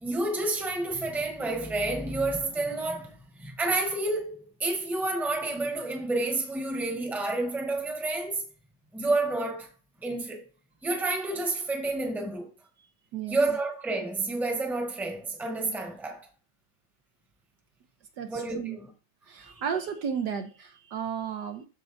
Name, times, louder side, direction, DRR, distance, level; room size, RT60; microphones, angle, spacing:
voice 1, 0.0-8.4 8.9-9.7 10.0-10.5 10.8-12.5 13.3-16.3 18.3-18.8, right 2 dB, ahead, 1.1 m, -29 dB
voice 2, 18.2-18.8 19.3-21.7, right 7 dB, 70° right, 1.3 m, -33 dB
13.5 x 4.5 x 2.6 m
omnidirectional pair, 2.0 m